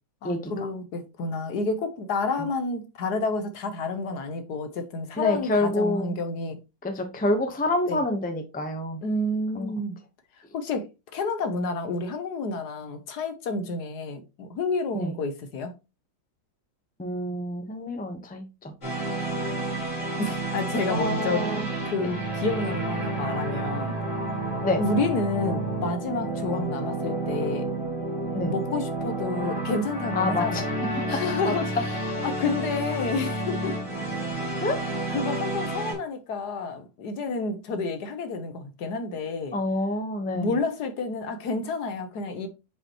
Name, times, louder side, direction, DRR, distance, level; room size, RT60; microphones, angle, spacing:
voice 1, 0.2-6.6 7.9-8.0 9.0-10.0 10.5-10.9 11.1-15.7 20.2-21.5 21.8-24.0 24.8-27.7 28.5-30.7 31.0-31.7 32.2-33.8 34.1-34.2 35.1-39.5 40.3-42.5, left 3 dB, 65° left, 1.4 m, -29 dB
voice 2, 5.2-6.1 6.8-9.0 9.5-9.7 14.9-15.1 17.0-18.7 20.9-21.7 22.0-22.1 24.6-24.8 26.5-26.6 28.3-28.5 30.1-30.6 31.4-31.5 34.6-34.8 39.5-40.6, left 1 dB, 5° left, 0.8 m, -27 dB
sound 1, 18.8-35.9, right 2 dB, 40° left, 4.2 m, -30 dB
7.4 x 5.2 x 3.0 m
omnidirectional pair, 2.0 m